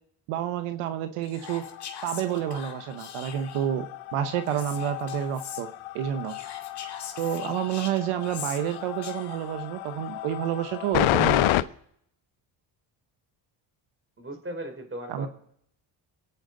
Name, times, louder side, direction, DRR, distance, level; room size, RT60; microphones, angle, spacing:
voice 1, 0.3-1.6 2.0-5.7 5.9-6.4 7.2-11.7 15.1-15.3, right 10 dB, 90° right, 9 dB, 1.1 m, -29 dB
Whispering, 1.2-3.7 4.5-5.6 6.2-9.5, left 8 dB, 55° left, 2.1 m, -42 dB
sound 1, 1.4-11.6, left 16 dB, 75° left, 0.7 m, -31 dB
voice 2, 14.2-15.3, right 1 dB, 25° right, 5 dB, 3.9 m, -37 dB
27.0 x 9.1 x 3.9 m, 0.71 s
supercardioid pair, 75°, 49 cm